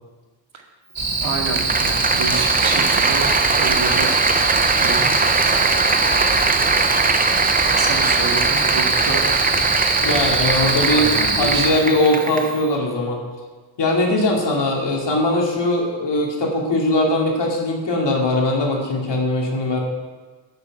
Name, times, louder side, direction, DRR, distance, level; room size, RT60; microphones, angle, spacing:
sound 1, 1.0-11.7, right 3 dB, 65° right, 2.9 m, -22 dB
Applause, 1.1-12.6, right 4 dB, 20° right, 0.5 m, -21 dB
voice 1, 1.2-3.3 3.6-4.1 4.8-5.4 7.8-9.2 10.7-11.8, right 4 dB, 85° right, 1 dB, 2.0 m, -28 dB
voice 2, 10.0-13.2 13.8-19.8, left 1 dB, 60° left, 0 dB, 2.5 m, -20 dB
11.0 x 6.7 x 7.6 m, 1.4 s
wide cardioid pair, 125°, 46 cm